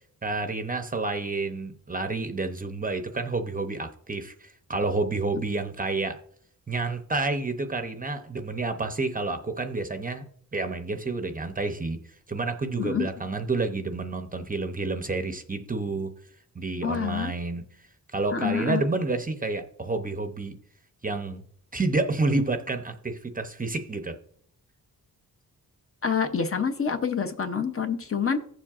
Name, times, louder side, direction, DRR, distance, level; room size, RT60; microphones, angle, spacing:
voice 1, 0.2-6.2 6.7-10.2 10.5-12.0 12.3-16.1 16.6-17.6 18.1-20.6 21.0-21.4 21.7-24.2, right 3 dB, 25° right, 7 dB, 0.6 m, -29 dB
voice 2, 12.8-13.1 16.8-17.3 18.3-18.8 26.0-28.4, left 6 dB, 40° left, 7 dB, 0.6 m, -27 dB
15.5 x 7.3 x 2.4 m, 0.63 s
wide cardioid pair, 180°, 37 cm